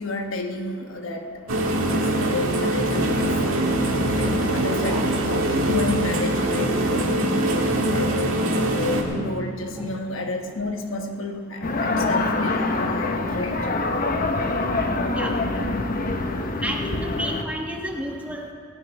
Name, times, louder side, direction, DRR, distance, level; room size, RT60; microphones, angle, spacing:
voice 1, 0.0-3.7 4.2-8.4 8.7-13.7, left 2 dB, 70° left, 4 dB, 1.1 m, -31 dB
sound 1, 1.5-9.0, right 1 dB, 90° right, 1.7 m, -23 dB
sound 2, 2.3-9.4, right 2 dB, 25° right, 0.4 m, -32 dB
sound 3, 11.6-17.4, left 2 dB, 45° left, 0.9 m, -25 dB
voice 2, 16.6-18.5, equal, 5° right, 1 dB, 1.1 m, -31 dB
17.5 x 10.0 x 4.8 m, 2.4 s
head